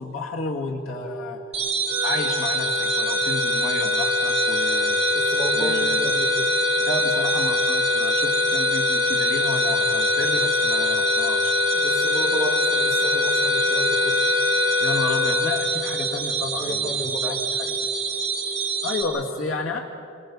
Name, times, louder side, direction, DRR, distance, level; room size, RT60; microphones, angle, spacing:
voice 1, 0.0-1.4 2.0-5.0 5.5-6.0 6.9-11.5 14.8-17.8 18.8-19.8, left 3 dB, 85° left, 0 dB, 2.2 m, -31 dB
sound 1, 0.9-18.9, right 3 dB, 5° left, 6.8 m, -39 dB
sound 2, 1.5-19.0, right 6 dB, 30° right, 4.5 m, -27 dB
sound 3, 1.8-16.4, left 4 dB, 50° right, 6.6 m, -23 dB
voice 2, 5.1-6.5 11.7-14.2 16.6-17.4, equal, 40° left, -2 dB, 3.4 m, -32 dB
27.5 x 25.0 x 5.5 m, 2.5 s
head